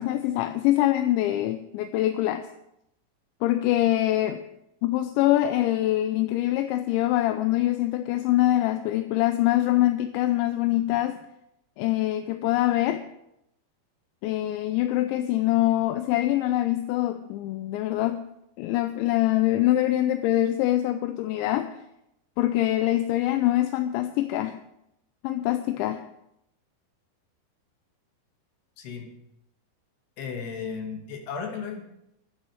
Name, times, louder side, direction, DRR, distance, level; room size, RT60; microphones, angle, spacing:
voice 1, 0.0-2.5 3.4-4.4 4.8-11.2 11.8-13.0 14.2-18.3 18.6-21.7 22.4-24.6 25.2-26.0, left 14 dB, 85° left, 9 dB, 3.0 m, -24 dB
voice 2, 28.8-29.1 30.2-31.8, left 6 dB, 65° left, 2 dB, 4.1 m, -34 dB
22.5 x 8.5 x 4.9 m, 0.82 s
omnidirectional pair, 5.3 m